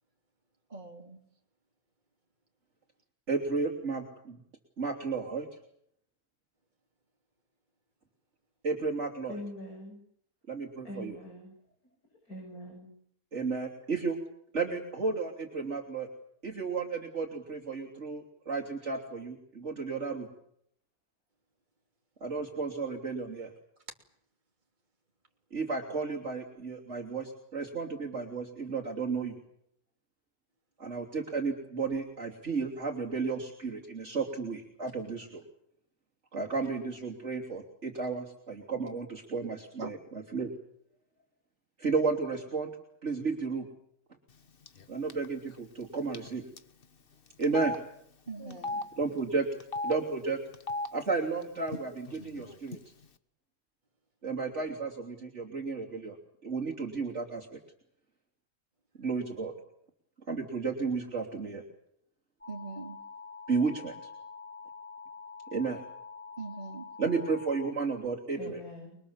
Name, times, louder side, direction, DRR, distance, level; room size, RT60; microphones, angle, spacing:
voice 1, 0.7-1.2 39.8-39.9 48.3-48.8 62.5-63.0 66.4-66.9, right 3 dB, 30° right, 3.2 m, -42 dB
voice 2, 3.3-4.4 4.8-5.5 8.6-9.3 10.5-11.2 13.3-14.2 14.5-16.1 16.4-20.3 22.2-23.5 25.5-29.4 30.8-35.4 36.3-40.5 41.8-42.7 43.0-43.7 44.9-46.5 47.4-47.8 49.0-49.5 49.8-50.4 50.9-52.8 54.2-56.2 56.4-57.6 59.0-59.5 60.3-61.6 63.5-64.1 65.5-65.8 67.0-68.6, right 4 dB, 50° right, 3.6 m, -33 dB
voice 3, 9.3-10.0 10.8-11.5 12.2-12.9 48.3-48.6 68.3-69.0, left 1 dB, 80° left, 7.5 m, -43 dB
Telephone, 44.7-44.8 45.1-45.3 46.1-46.3 46.6-46.7 47.4-47.8 48.5-48.8 49.6-49.9 50.5-50.9 51.7-51.8 52.1-52.8, left 2 dB, 40° left, 1.4 m, -34 dB
sound 1, 62.4-67.7, left 5 dB, 5° left, 3.3 m, -46 dB
28.0 x 22.5 x 7.3 m
omnidirectional pair, 1.5 m